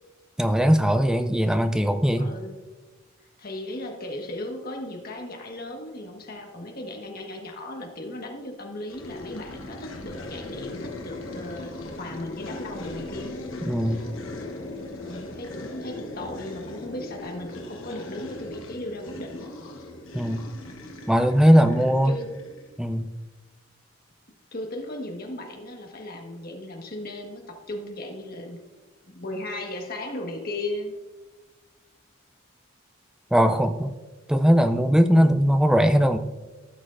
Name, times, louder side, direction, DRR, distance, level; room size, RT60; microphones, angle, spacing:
voice 1, 0.4-2.3 13.6-14.1 20.1-20.5 21.1-22.2 22.8-23.1 33.3-33.9 34.3-36.2, equal, 5° right, 8 dB, 0.4 m, -20 dB
voice 2, 2.2-2.6 3.4-13.4 15.0-19.6 21.5-22.3 24.5-28.6 29.1-31.0, left 1 dB, 50° left, 1 dB, 1.5 m, -36 dB
sound 1, 8.9-22.8, left 2 dB, 85° left, 1.1 m, -39 dB
16.0 x 6.4 x 2.5 m, 1.2 s
head